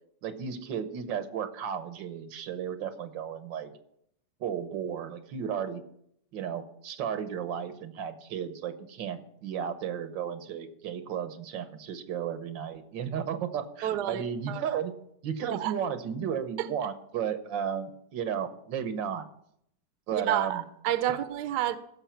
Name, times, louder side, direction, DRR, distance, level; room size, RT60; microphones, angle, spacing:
voice 1, 0.2-3.7 4.4-5.8 6.3-14.9 15.2-19.3 20.1-20.6 21.1-21.2, right 8 dB, 85° right, 1.7 m, -34 dB
voice 2, 13.8-14.8 15.5-15.7 16.6-16.7 20.1-21.8, right 12 dB, 70° right, 1.2 m, -30 dB
15.0 x 6.6 x 5.7 m
omnidirectional pair, 2.0 m